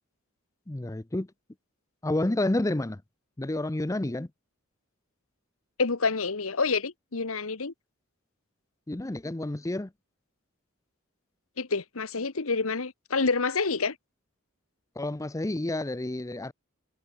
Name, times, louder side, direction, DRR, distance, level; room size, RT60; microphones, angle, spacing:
voice 1, 0.7-1.3 2.0-3.0 3.4-4.3 8.9-9.9 15.0-16.5, left 1 dB, 15° left, 0.6 m, -29 dB
voice 2, 5.8-7.7 11.6-13.9, left 4 dB, 80° left, 1.3 m, -28 dB
head